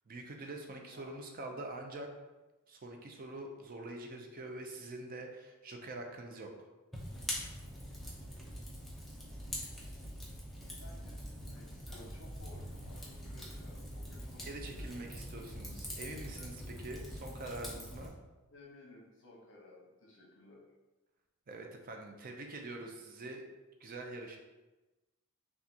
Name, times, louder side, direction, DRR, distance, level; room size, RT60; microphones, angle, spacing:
voice 1, 0.1-2.1 2.7-6.5 14.4-16.5 16.8-18.1 21.5-23.4 23.8-24.4, right 2 dB, 40° right, 2 dB, 0.5 m, -45 dB
voice 2, 0.7-1.2 10.8-14.5 14.7-14.8 15.1-15.2 16.3-16.7 17.0-17.2 18.5-20.6, left 2 dB, 55° left, -2 dB, 1.1 m, -57 dB
Fire, 6.9-18.1, equal, ahead, 0.6 m, -44 dB
5.8 x 2.4 x 2.8 m, 1.1 s
head